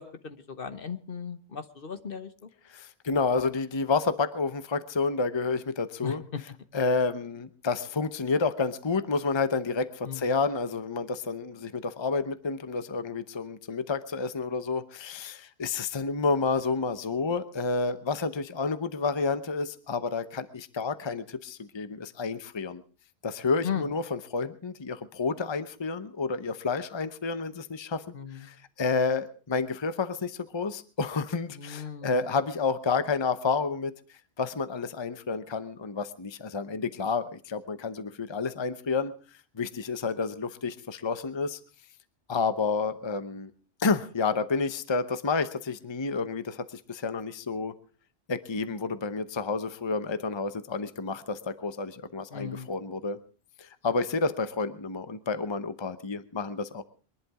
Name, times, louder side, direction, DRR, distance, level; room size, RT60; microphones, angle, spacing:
voice 1, 0.0-2.5 6.0-6.4 10.0-10.3 23.6-23.9 28.1-28.5 31.5-32.2 52.3-52.7, left 7 dB, 60° left, 10 dB, 1.3 m, -37 dB
voice 2, 2.7-6.2 6.7-22.8 23.2-33.9 34.4-39.1 39.5-41.6 42.3-43.5 43.8-47.7 48.3-53.2 53.6-56.8, left 4 dB, 30° left, 12 dB, 0.8 m, -30 dB
22.5 x 11.0 x 4.8 m, 0.39 s
omnidirectional pair, 1.1 m